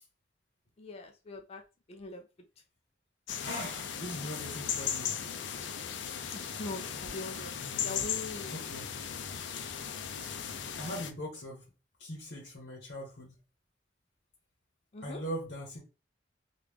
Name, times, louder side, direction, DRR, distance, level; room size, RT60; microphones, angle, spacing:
voice 1, 0.8-1.6 1.9-2.2 6.3-7.5 7.8-8.6 14.9-15.2, left 2 dB, 35° left, 4 dB, 0.4 m, -42 dB
sound 1, 3.3-11.1, left 8 dB, 90° left, 0.5 m, -37 dB
voice 2, 3.4-5.3 7.6-8.9 10.8-11.7 12.0-13.3 15.0-15.8, equal, 65° left, -3 dB, 1.0 m, -41 dB
3.1 x 2.4 x 3.5 m, 0.31 s
head